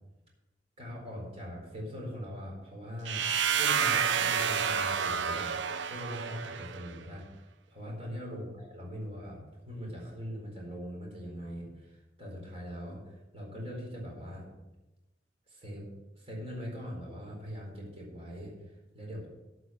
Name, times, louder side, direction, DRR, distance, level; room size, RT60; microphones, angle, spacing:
voice 1, 0.8-3.3 3.6-5.5 5.9-9.4 9.6-14.5 15.5-15.9 16.2-19.3, equal, 35° right, -2 dB, 4.3 m, -41 dB
sound 1, 3.1-6.9, right 7 dB, 80° right, 0.6 m, -29 dB
13.0 x 6.1 x 7.7 m, 1.0 s
head